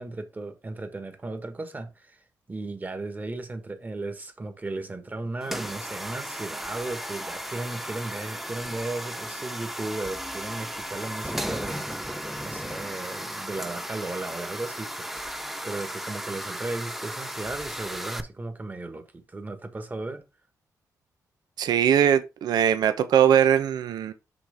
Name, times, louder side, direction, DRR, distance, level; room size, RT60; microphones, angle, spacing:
voice 1, 0.0-2.2 2.5-20.2, right 2 dB, 25° right, 1.5 m, -36 dB
sound 1, 5.4-18.2, equal, 5° right, 0.7 m, -35 dB
voice 2, 21.6-24.1, right 9 dB, 85° right, 0.7 m, -21 dB
6.1 x 5.7 x 3.5 m
cardioid pair, 100°, 7 cm